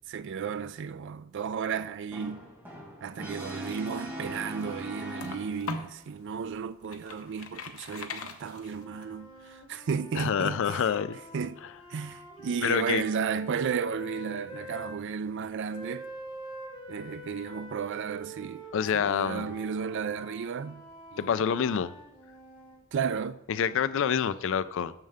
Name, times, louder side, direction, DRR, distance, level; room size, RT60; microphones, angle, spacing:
voice 1, 0.1-2.5 3.0-10.9 11.3-11.6 11.9-16.1 16.9-18.6 18.9-20.8 21.1-21.4 22.9-23.4, right 6 dB, 60° right, 0.4 m, -33 dB
Brass instrument, 2.1-5.9, equal, 10° right, 1.6 m, -40 dB
sound 1, 3.9-6.0 6.5-9.0, left 4 dB, 80° left, 0.8 m, -41 dB
sound 2, 8.7-15.0 15.7-22.8, right 1 dB, 25° left, 1.9 m, -46 dB
voice 2, 10.2-11.2 12.6-13.0 18.7-19.5 21.2-21.9 23.5-24.9, left 7 dB, 65° left, 0.4 m, -27 dB
9.0 x 6.5 x 3.5 m
head